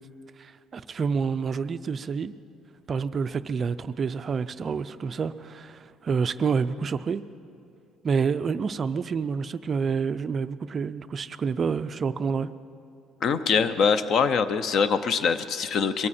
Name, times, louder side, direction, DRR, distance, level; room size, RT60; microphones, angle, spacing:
voice 1, 0.4-2.3 2.9-7.2 8.0-12.5, right 5 dB, 30° right, 0.3 m, -28 dB
voice 2, 13.2-16.1, left 6 dB, 45° left, 0.6 m, -23 dB
22.5 x 13.5 x 4.3 m
cardioid pair, 160°, 0 cm